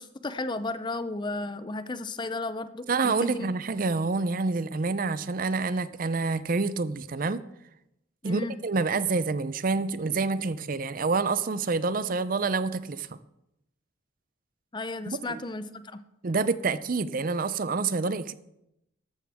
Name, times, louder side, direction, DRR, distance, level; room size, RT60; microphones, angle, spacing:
voice 1, 0.0-3.5 8.2-8.6 14.7-16.0, left 2 dB, 20° left, 12 dB, 0.5 m, -34 dB
voice 2, 2.9-7.4 8.2-13.1 15.1-15.4 16.2-18.3, right 4 dB, 45° right, 15 dB, 0.5 m, -27 dB
13.5 x 12.0 x 3.5 m, 0.84 s
head